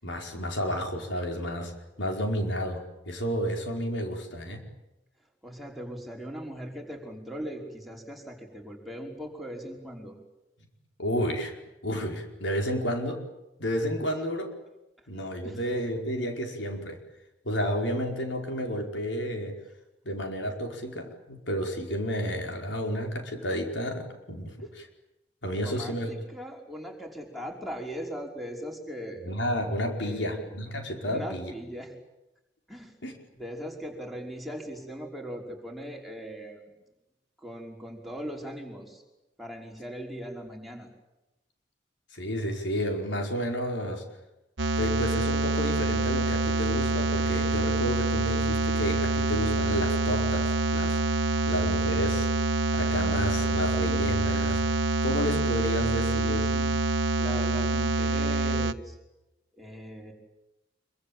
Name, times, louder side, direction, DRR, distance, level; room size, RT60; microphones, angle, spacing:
voice 1, 0.0-1.7 2.0-4.6 11.0-11.5 11.8-13.2 13.6-14.5 15.1-17.0 17.4-19.6 20.0-24.9 25.4-26.1 29.2-31.5 33.0-33.1 42.1-44.0 44.8-51.0 51.5-52.3 52.7-54.6 55.0-56.4, equal, 75° left, 3 dB, 5.0 m, -31 dB
voice 2, 5.4-10.1 14.1-14.2 15.4-15.7 24.6-24.7 25.6-29.2 30.0-30.5 31.1-31.9 32.7-33.0 33.3-36.7 37.4-39.0 39.4-40.9 55.9-56.8 57.2-59.0 59.5-60.1, equal, ahead, 0 dB, 5.3 m, -40 dB
sound 1, 44.6-58.7, right 3 dB, 90° right, 1.2 m, -26 dB
26.0 x 24.0 x 8.9 m, 0.96 s
head